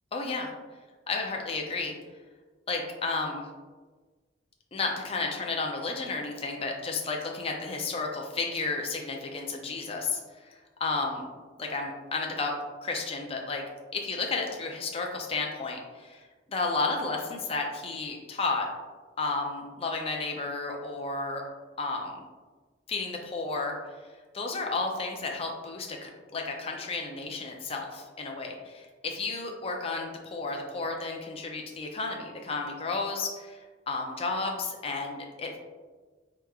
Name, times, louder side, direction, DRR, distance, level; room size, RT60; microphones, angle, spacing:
voice 1, 0.1-0.5 1.1-1.9 2.7-3.4 4.7-10.2 10.8-11.3 11.6-12.5 12.8-13.6 13.9-16.2 16.5-18.7 19.2-21.4 21.8-22.2 22.9-23.7 24.3-33.6 33.9-35.6, left 3 dB, 30° left, 1 dB, 0.4 m, -32 dB
3.5 x 2.9 x 2.3 m, 1.3 s
head